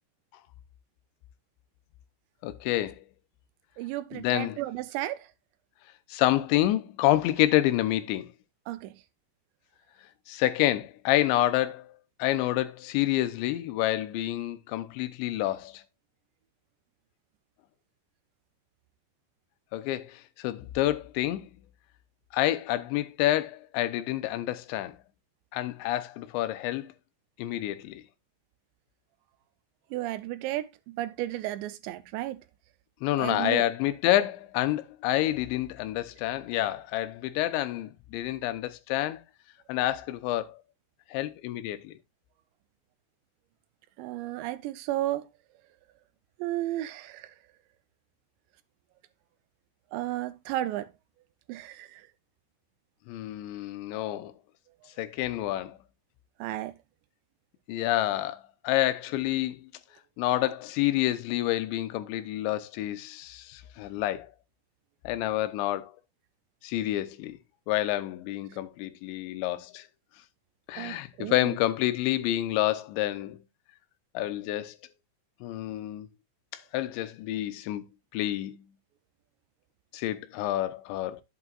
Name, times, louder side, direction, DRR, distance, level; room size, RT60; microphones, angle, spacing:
voice 1, 2.4-3.0 4.1-4.6 6.1-8.3 10.3-11.9 12.2-15.8 19.7-21.5 22.3-25.0 25.5-26.9 27.4-28.0 33.0-39.2 39.7-40.6 41.1-41.9 53.1-54.3 55.0-55.8 57.7-59.7 60.2-64.3 65.0-65.9 66.6-67.4 67.7-69.9 70.7-73.4 74.1-74.8 75.4-76.1 76.5-77.8 78.1-78.6 79.9-81.2, left 14 dB, 85° left, 3.0 m, -28 dB
voice 2, 3.8-5.3 8.7-9.0 29.9-32.4 33.2-33.7 44.0-45.3 46.4-47.3 49.9-50.9 51.5-52.0 56.4-56.7 70.8-71.6, right 15 dB, 85° right, 2.9 m, -33 dB
11.0 x 8.0 x 2.4 m
omnidirectional pair, 5.1 m